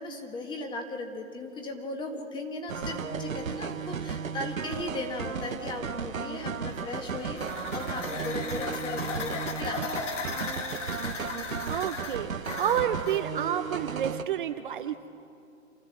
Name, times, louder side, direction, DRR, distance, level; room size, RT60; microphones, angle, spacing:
voice 1, 0.0-10.3, left 2 dB, 10° left, 4 dB, 1.6 m, -37 dB
sound 1, 2.7-14.2, right 6 dB, 90° right, 1.2 m, -35 dB
sound 2, 7.0-13.2, left 5 dB, 65° left, 2.3 m, -37 dB
voice 2, 11.7-12.3 12.6-15.1, right 10 dB, 40° right, 8 dB, 0.7 m, -29 dB
28.0 x 13.0 x 7.3 m, 2.6 s
hypercardioid pair, 140°, 40 cm